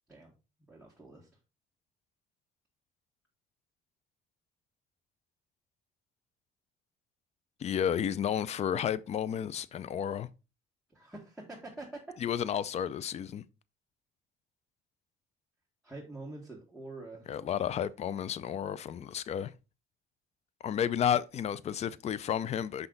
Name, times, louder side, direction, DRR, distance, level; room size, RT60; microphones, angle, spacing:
voice 1, 0.7-1.3 10.9-12.0 15.8-17.3, right 2 dB, 5° right, 2.0 m, -46 dB
voice 2, 7.6-10.3 12.2-13.4 17.3-19.5 20.6-22.9, left 9 dB, 40° left, 0.5 m, -32 dB
5.9 x 5.5 x 3.9 m
cardioid pair, 110°, 17 cm